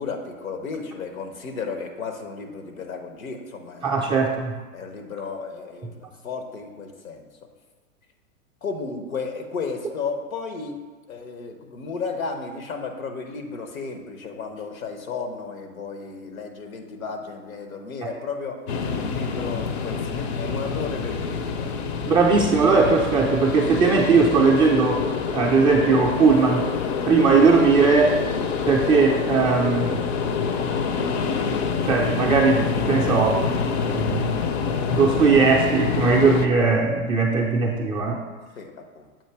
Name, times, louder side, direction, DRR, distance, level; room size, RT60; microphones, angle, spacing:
voice 1, 0.0-4.3 4.7-7.3 8.6-10.8 11.1-18.6 19.0-21.7 38.6-39.1, left 4 dB, 80° left, 4 dB, 1.1 m, -33 dB
voice 2, 3.8-4.6 18.0-18.1 22.0-26.7 27.1-28.2 28.7-30.0 31.8-33.4 33.9-34.4 34.9-38.2, right 4 dB, 15° right, -2 dB, 0.3 m, -19 dB
sound 1, 18.7-36.5, left 5 dB, 50° left, 0.6 m, -26 dB
7.3 x 2.7 x 5.7 m, 1.3 s
hypercardioid pair, 110°, 41 cm